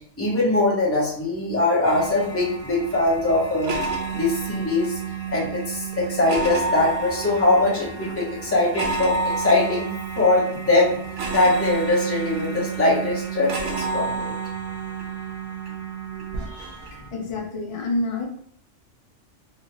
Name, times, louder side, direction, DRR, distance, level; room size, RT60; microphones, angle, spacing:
voice 1, 0.2-3.7 4.1-5.0 5.3-9.9 10.2-11.0 11.3-14.3 16.5-16.7, left 2 dB, 15° left, -5 dB, 0.8 m, -22 dB
sound 1, 1.8-17.1, right 4 dB, 80° right, 1.0 m, -30 dB
voice 2, 17.1-18.3, left 2 dB, 45° left, 1 dB, 0.4 m, -27 dB
2.9 x 2.7 x 2.9 m, 0.65 s
omnidirectional pair, 1.2 m